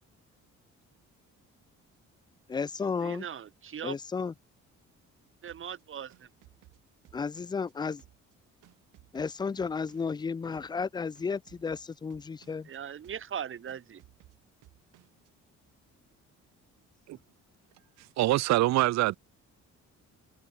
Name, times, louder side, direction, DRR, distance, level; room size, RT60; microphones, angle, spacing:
voice 1, 2.5-3.3 3.8-4.3 7.1-8.0 9.1-12.7, left 5 dB, 15° left, 0.3 m, -33 dB
voice 2, 3.0-4.0 5.4-6.3 12.6-14.0, right 8 dB, 45° right, 1.2 m, -39 dB
sound 1, 5.5-7.7 8.0-10.2 10.5-10.9 11.2-12.8 13.0-13.4 13.7-15.3, right 16 dB, 85° right, 1.7 m, -60 dB
voice 3, 18.2-19.2, right 16 dB, 65° right, 0.5 m, -24 dB
cardioid pair, 90°, 30 cm